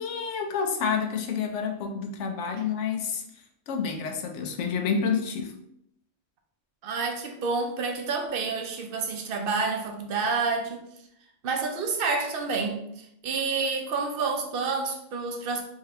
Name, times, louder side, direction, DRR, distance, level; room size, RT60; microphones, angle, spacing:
voice 1, 0.0-3.2 3.7-5.5, left 6 dB, 70° left, 4 dB, 0.9 m, -29 dB
voice 2, 6.8-10.9 11.4-15.6, right 4 dB, 60° right, 3 dB, 0.7 m, -29 dB
3.6 x 3.1 x 2.8 m, 0.76 s
omnidirectional pair, 1.3 m